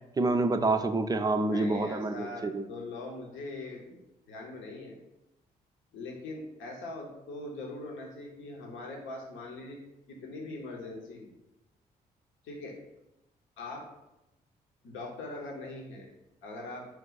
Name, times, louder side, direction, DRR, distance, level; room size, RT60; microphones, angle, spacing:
voice 1, 0.2-2.7, right 2 dB, 20° right, 9 dB, 0.4 m, -27 dB
voice 2, 1.4-4.0 4.3-5.0 5.9-9.8 10.1-11.3 12.4-12.8 13.6-13.9 14.8-16.1 16.4-16.8, left 2 dB, 65° left, 0 dB, 0.9 m, -41 dB
4.5 x 2.3 x 3.9 m, 0.90 s
hypercardioid pair, 40°, 21 cm